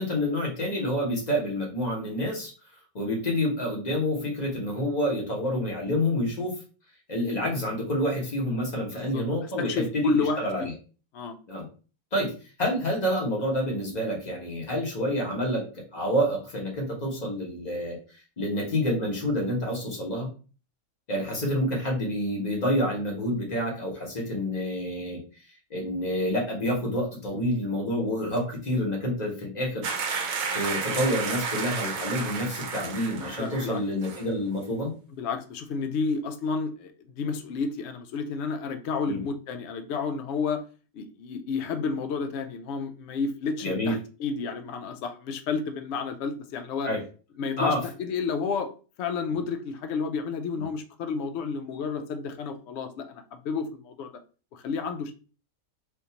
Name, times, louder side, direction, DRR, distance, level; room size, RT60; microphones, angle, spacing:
voice 1, 0.0-2.5 2.9-6.6 7.1-10.7 11.5-11.7 12.1-12.3 12.6-15.7 15.9-20.3 21.1-25.2 25.7-29.9 30.5-34.9 39.1-39.2 43.6-44.0 46.8-47.0 47.6-47.8, equal, 30° left, -2 dB, 1.2 m, -28 dB
voice 2, 8.9-9.2 9.6-10.7 11.1-11.4 33.2-33.8 35.2-40.6 40.9-46.9 47.4-48.7 49.0-54.1 54.5-55.1, left 5 dB, 65° left, 7 dB, 0.7 m, -31 dB
sound 1, 29.8-33.8 34.0-34.2, right 5 dB, 75° right, 1.1 m, -32 dB
3.5 x 2.6 x 2.8 m, 0.36 s
omnidirectional pair, 1.5 m